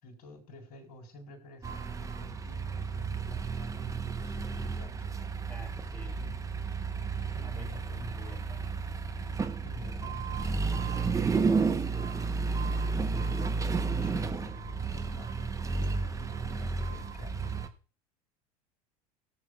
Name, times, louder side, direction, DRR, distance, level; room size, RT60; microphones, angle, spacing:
voice 1, 0.0-5.3 6.2-6.4 7.1-8.5 9.6-17.7, equal, 50° left, 1 dB, 3.7 m, -48 dB
sound 1, 1.6-17.7, right 4 dB, 15° right, 0.8 m, -32 dB
voice 2, 5.5-6.2 7.4-8.6, right 3 dB, 10° left, 3 dB, 2.5 m, -49 dB
21.0 x 7.3 x 2.3 m, 0.39 s
figure-of-eight pair, 75°, 20 cm